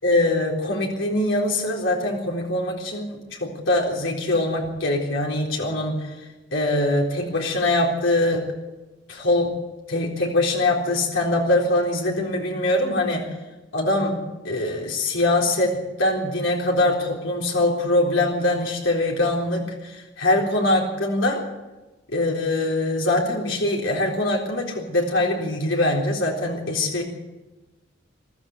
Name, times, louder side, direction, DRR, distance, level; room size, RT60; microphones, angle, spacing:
voice 1, 0.0-6.1 6.5-8.5 9.1-9.5 9.9-13.3 13.7-21.4 22.1-27.0, left 1 dB, 85° left, -1 dB, 3.9 m, -23 dB
23.5 x 14.0 x 7.9 m, 1.1 s
head